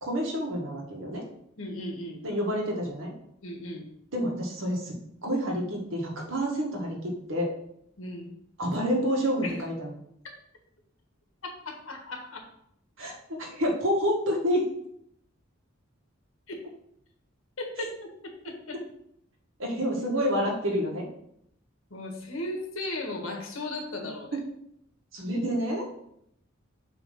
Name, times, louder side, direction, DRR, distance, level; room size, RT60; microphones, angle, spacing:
voice 1, 0.0-1.2 2.2-3.1 4.1-4.9 5.2-7.5 8.6-9.9 13.0-14.6 19.6-21.0 24.0-24.4 25.1-25.9, equal, 85° right, -1 dB, 1.8 m, -28 dB
voice 2, 1.6-2.2 3.4-3.9 8.0-8.3 9.4-9.6 11.4-12.4 16.5-16.6 17.6-18.8 21.9-24.3, left 1 dB, 85° left, 2 dB, 1.5 m, -36 dB
6.9 x 3.2 x 5.7 m, 0.73 s
head